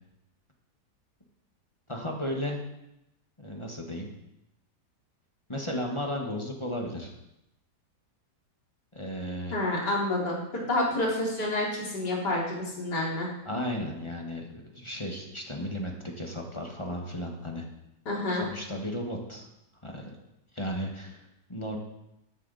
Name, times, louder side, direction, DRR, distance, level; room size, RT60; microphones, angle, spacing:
voice 1, 1.9-2.6 3.4-4.1 5.5-7.1 8.9-9.6 13.4-17.6 18.3-19.5 19.8-20.2 20.5-21.8, equal, 20° left, 1 dB, 1.6 m, -34 dB
voice 2, 9.5-13.3 18.1-18.5, left 1 dB, 75° left, -3 dB, 3.5 m, -29 dB
13.0 x 10.5 x 4.2 m, 0.87 s
omnidirectional pair, 1.8 m